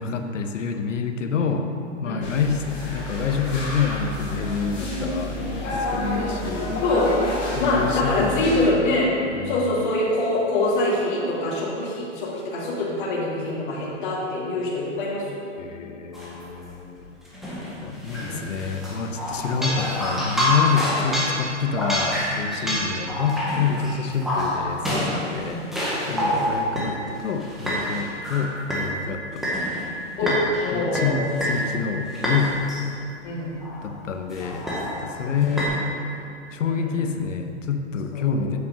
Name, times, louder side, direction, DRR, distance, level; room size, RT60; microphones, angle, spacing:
voice 1, 0.0-1.7 2.0-6.8 7.5-9.7 15.6-17.1 17.8-25.7 26.1-29.5 30.2-30.4 30.7-32.6 33.8-35.7 36.5-38.6, left 6 dB, 85° left, 6 dB, 1.0 m, -27 dB
sound 1, 2.2-8.6, left 1 dB, 20° left, 2.0 m, -30 dB
voice 2, 7.6-9.1 9.4-15.4 18.1-18.4 19.6-19.8 21.1-21.2 22.6-22.9 25.4-25.7 26.2-26.5 30.2-30.3 30.6-31.3 33.2-33.6 35.2-35.4 36.6-36.9 38.1-38.3, left 2 dB, 40° left, -5 dB, 2.2 m, -25 dB
sound 2, 16.1-16.4 17.3-26.9 27.4-28.9 29.4-29.9 30.3-30.7 30.9-31.7 32.1-32.8 33.6-33.9 34.3-35.7, equal, ahead, 0.6 m, -27 dB
8.0 x 5.7 x 5.2 m, 2.5 s
hypercardioid pair, 160°, 37 cm